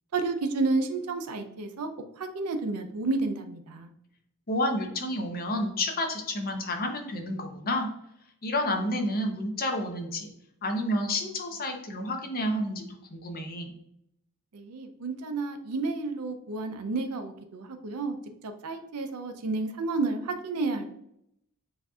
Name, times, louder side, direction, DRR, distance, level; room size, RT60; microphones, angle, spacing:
voice 1, 0.1-1.9 2.2-3.9 14.5-18.2 18.4-20.9, right 3 dB, 85° right, 7 dB, 0.5 m, -31 dB
voice 2, 4.5-7.9 8.4-10.3 10.6-12.8 13.1-13.7, left 1 dB, 40° left, 4 dB, 0.7 m, -30 dB
6.9 x 2.6 x 2.3 m, 0.74 s
head